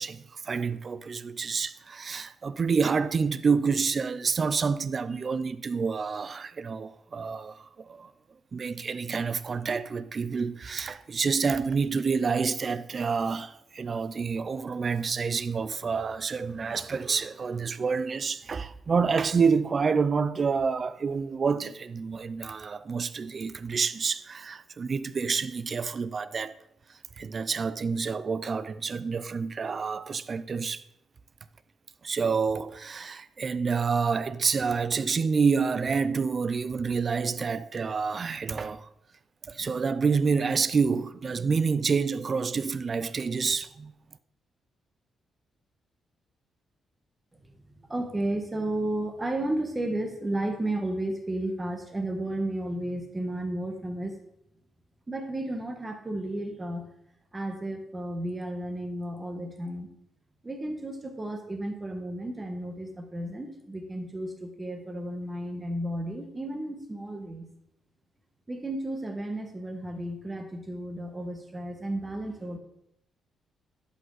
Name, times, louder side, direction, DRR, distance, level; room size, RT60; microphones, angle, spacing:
voice 1, 0.0-8.1 8.5-26.5 27.2-30.8 32.0-38.9 39.5-43.9, right 5 dB, 35° right, 0.4 m, -28 dB
voice 2, 47.5-54.2 55.1-56.8 57.3-59.9 60.4-67.5 68.5-72.6, right 1 dB, 20° right, 1.3 m, -33 dB
11.0 x 5.1 x 4.0 m
cardioid pair, 125°, 0 cm